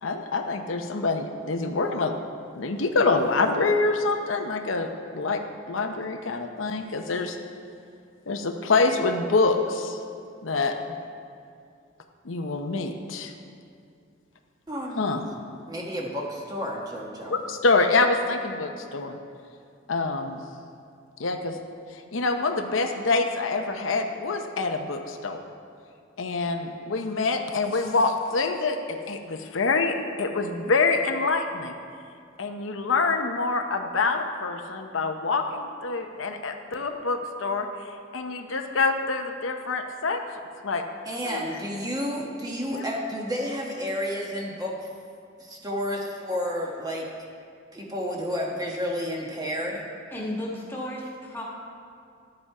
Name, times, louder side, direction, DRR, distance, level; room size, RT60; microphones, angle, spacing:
voice 1, 0.0-2.1 2.6-7.4 8.3-10.0 10.4-10.7 12.2-13.3 15.0-15.2 17.3-19.2 19.9-20.4 21.2-21.6 21.9-25.4 26.2-31.7 32.4-37.7 38.1-40.2 40.6-40.8 41.2-41.4 42.7-42.9, left 3 dB, 85° left, 5 dB, 0.8 m, -26 dB
voice 2, 14.7-15.0 15.7-17.4 41.0-44.8 45.4-47.1 47.7-49.8, equal, 20° right, -2 dB, 1.3 m, -31 dB
voice 3, 50.1-51.4, left 1 dB, 10° left, -4 dB, 1.6 m, -33 dB
11.5 x 7.8 x 4.8 m, 2.4 s
head